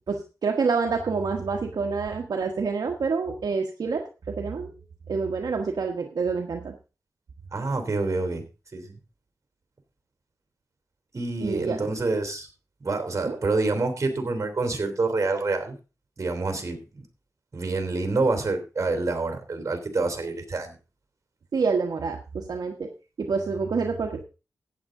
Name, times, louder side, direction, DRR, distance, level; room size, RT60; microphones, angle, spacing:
voice 1, 0.1-4.8 5.1-6.7 11.4-11.8 13.3-13.4 21.5-22.9 23.2-24.2, right 4 dB, 75° right, 3 dB, 1.3 m, -27 dB
voice 2, 7.5-8.4 8.7-9.0 11.1-12.5 12.8-15.8 16.2-16.8 17.5-20.8, right 3 dB, 50° right, 7 dB, 3.2 m, -27 dB
14.5 x 8.9 x 3.8 m, 0.31 s
wide cardioid pair, 85°, 7 cm